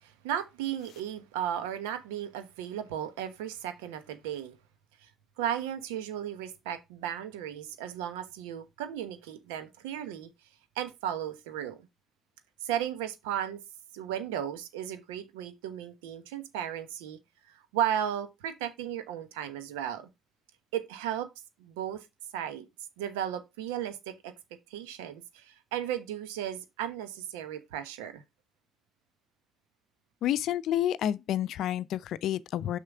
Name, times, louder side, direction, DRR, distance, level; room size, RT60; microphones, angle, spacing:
voice 1, 0.0-4.6 5.0-5.1 5.4-10.3 10.8-11.8 12.6-13.6 13.9-17.2 17.7-20.1 20.7-21.3 21.6-22.0 22.3-22.7 23.0-24.3 24.7-28.2, right 10 dB, 85° right, 1.0 m, -35 dB
voice 2, 30.2-32.8, left 11 dB, 70° left, 0.5 m, -29 dB
6.4 x 5.7 x 4.8 m
hypercardioid pair, 50°, 0 cm